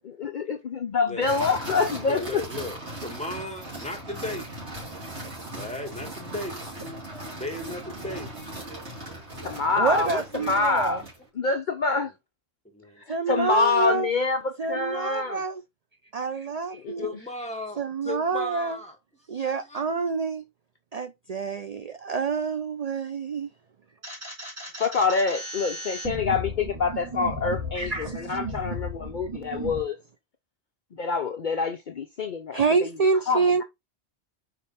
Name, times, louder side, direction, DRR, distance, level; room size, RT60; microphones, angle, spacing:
voice 1, 0.2-2.4 9.4-11.0 11.4-12.1 13.3-15.4 16.7-17.1 24.8-30.0 31.0-32.9 33.3-33.6, left 4 dB, 50° left, 0.7 m, -26 dB
voice 2, 1.1-1.6 2.0-4.5 5.5-6.6 7.3-8.3 12.6-13.0 17.0-19.0 19.3-19.8, left 1 dB, 5° left, 1.8 m, -36 dB
sound 1, 1.2-11.2, right 1 dB, 80° right, 3.2 m, -38 dB
voice 3, 9.8-11.0 13.1-14.1 14.6-15.6 16.1-17.1 17.8-18.8 19.3-20.4 20.9-23.5 27.8-28.4 32.5-33.6, right 4 dB, 45° right, 0.5 m, -27 dB
sound 2, 24.0-29.8, equal, 30° right, 3.2 m, -35 dB
5.1 x 4.5 x 4.2 m
omnidirectional pair, 1.1 m